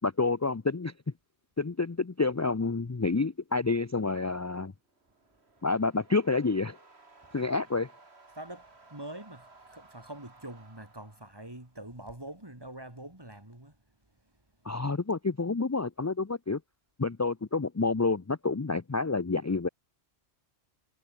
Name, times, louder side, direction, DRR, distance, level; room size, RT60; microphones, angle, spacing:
voice 1, 0.0-0.9 1.6-4.7 5.6-6.8 7.3-7.9 14.6-16.6 17.0-19.7, left 3 dB, 25° left, 0.4 m, -28 dB
sound 1, 4.8-11.9, right 3 dB, 65° right, 3.1 m, -58 dB
voice 2, 8.4-13.7, right 1 dB, 20° right, 3.0 m, -44 dB
omnidirectional pair, 1.2 m